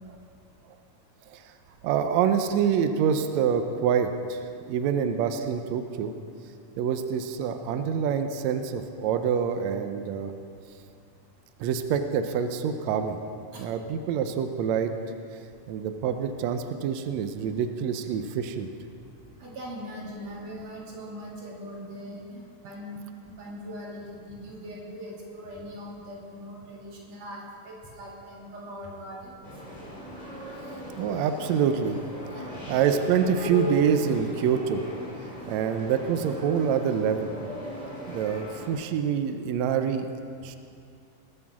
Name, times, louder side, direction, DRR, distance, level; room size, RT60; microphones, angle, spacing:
voice 1, 1.8-4.4 4.7-6.1 6.8-10.3 11.6-13.2 13.6-14.9 15.7-18.7 31.0-32.0 32.7-34.9 35.5-37.3 38.1-40.6, right 7 dB, 85° right, 7 dB, 1.5 m, -26 dB
voice 2, 19.4-29.4, equal, 50° right, -4 dB, 3.8 m, -41 dB
sound 1, 29.4-38.7, equal, 15° left, 2.5 m, -37 dB
20.5 x 8.8 x 6.1 m, 2.4 s
omnidirectional pair, 4.1 m